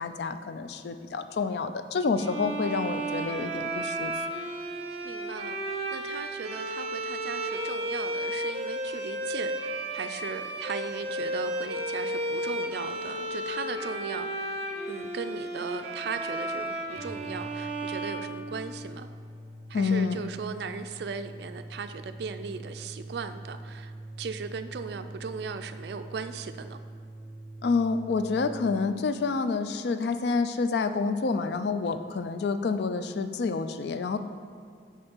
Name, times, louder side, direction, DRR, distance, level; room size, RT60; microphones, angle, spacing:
voice 1, 0.0-4.1 19.7-20.2 27.6-34.2, left 4 dB, 65° left, 10 dB, 0.3 m, -28 dB
Violin - D natural minor, 2.1-19.0, right 1 dB, 35° right, 0.7 m, -33 dB
voice 2, 5.0-14.5 14.9-19.1 19.7-23.9 24.2-26.8, right 5 dB, 65° right, 9 dB, 0.3 m, -38 dB
sound 1, 16.9-28.8, right 1 dB, 15° left, 1.4 m, -44 dB
6.4 x 4.9 x 4.5 m, 2.3 s
head